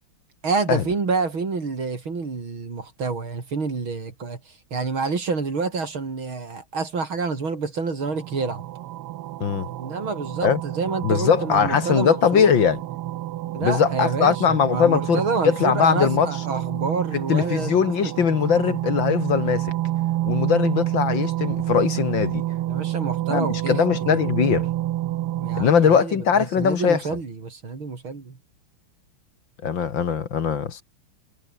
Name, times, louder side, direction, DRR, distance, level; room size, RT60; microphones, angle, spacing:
voice 1, 0.4-8.6 9.8-12.5 13.5-18.1 22.7-24.7 25.4-26.2 26.6-28.4, right 4 dB, 65° right, 4.6 m, -28 dB
sound 1, 8.0-25.6, right 14 dB, 90° right, 1.8 m, -29 dB
voice 2, 11.0-12.8 13.6-16.3 17.3-19.7 20.2-22.4 23.3-24.7 25.6-27.0 29.6-30.8, left 7 dB, 60° left, 2.3 m, -20 dB
omnidirectional pair, 2.4 m